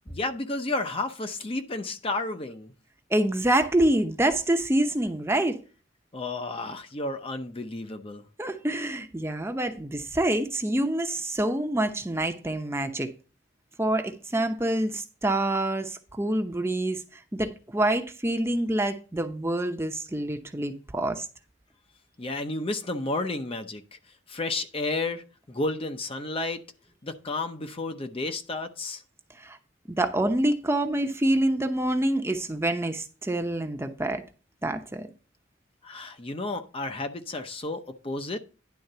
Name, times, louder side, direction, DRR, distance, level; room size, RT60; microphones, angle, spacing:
voice 1, 0.1-2.7 6.1-8.2 22.2-23.8 24.3-26.6 27.0-29.0 35.8-38.4, left 2 dB, 30° left, 0.7 m, -32 dB
voice 2, 3.1-5.6 8.4-13.1 13.8-17.0 17.3-21.3 29.4-29.6 30.0-34.2 34.6-35.1, right 1 dB, 15° right, 0.8 m, -26 dB
10.5 x 3.8 x 6.6 m
head